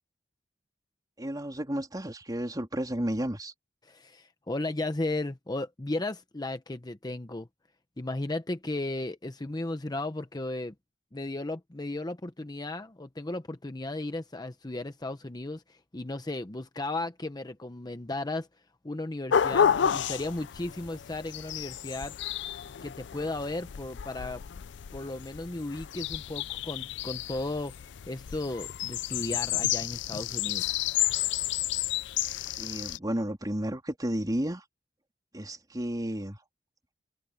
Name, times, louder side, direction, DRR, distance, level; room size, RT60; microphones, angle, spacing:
voice 1, 1.2-3.5 32.6-34.6 35.3-36.4, right 1 dB, 20° right, 3.5 m, -32 dB
voice 2, 3.8-7.5 8.0-10.7 11.1-18.5 18.8-22.1 22.8-24.4 24.9-27.7 28.1-30.7, left 2 dB, 20° left, 0.8 m, -35 dB
sound 1, 19.3-33.0, left 9 dB, 70° left, 0.4 m, -31 dB
head